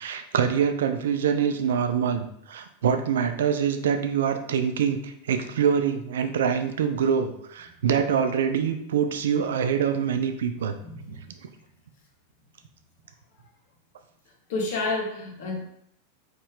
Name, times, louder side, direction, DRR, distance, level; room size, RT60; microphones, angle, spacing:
voice 1, 0.0-10.8 11.1-11.2, right 7 dB, 60° right, 8 dB, 0.4 m, -25 dB
voice 2, 14.5-15.6, left 3 dB, 50° left, 0 dB, 1.1 m, -29 dB
4.2 x 3.3 x 3.6 m, 0.72 s
figure-of-eight pair, 90°, 0 cm